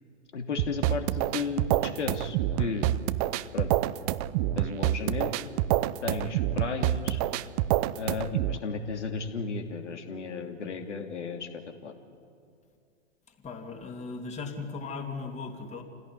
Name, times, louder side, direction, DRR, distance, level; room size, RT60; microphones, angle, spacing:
voice 1, 0.3-2.9 3.5-3.7 4.4-5.3 6.0-7.2 8.0-11.5 11.8-11.9, left 5 dB, 75° left, 5 dB, 3.0 m, -34 dB
sound 1, 0.6-8.6, right 14 dB, 30° right, 0.7 m, -27 dB
voice 2, 13.3-15.8, left 4 dB, 20° left, 4 dB, 2.8 m, -38 dB
27.5 x 17.0 x 9.9 m, 2.3 s
hypercardioid pair, 115°, 36 cm